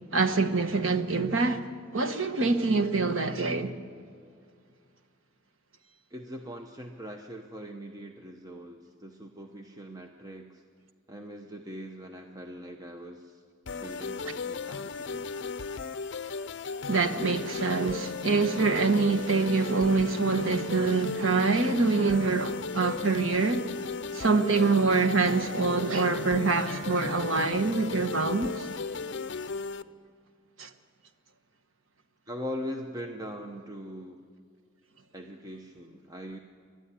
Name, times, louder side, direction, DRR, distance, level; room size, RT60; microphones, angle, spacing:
voice 1, 0.1-1.6 1.9-3.7 16.9-23.6 24.1-28.7 30.6-30.7, right 4 dB, 80° right, 1.3 m, -25 dB
voice 2, 6.1-10.6 11.1-13.4 13.7-15.3 32.3-34.2 35.1-36.4, equal, 15° right, 0.8 m, -41 dB
sound 1, 13.7-29.8, left 4 dB, 60° left, 0.6 m, -36 dB
29.5 x 12.0 x 9.9 m
head